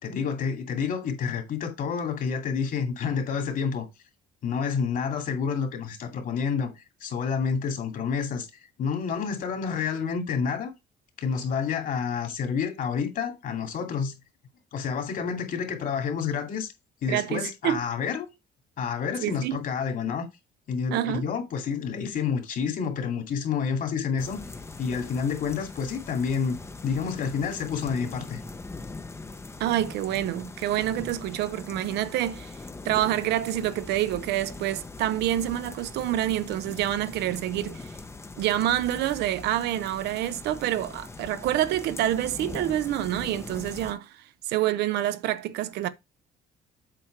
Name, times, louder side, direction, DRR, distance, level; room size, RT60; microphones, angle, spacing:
voice 1, 0.0-3.9 4.4-10.7 11.2-14.1 14.7-16.7 17.0-18.3 18.8-20.3 20.7-24.4 24.8-26.6 26.8-28.4, left 6 dB, 55° left, 2.5 m, -29 dB
voice 2, 17.1-17.8 19.2-19.6 20.9-21.3 29.6-32.6 32.8-37.9 38.4-45.9, right 13 dB, 80° right, 0.8 m, -27 dB
sound 1, 24.2-43.9, left 3 dB, 15° left, 0.7 m, -41 dB
7.8 x 4.4 x 4.5 m
cardioid pair, 110°, 17 cm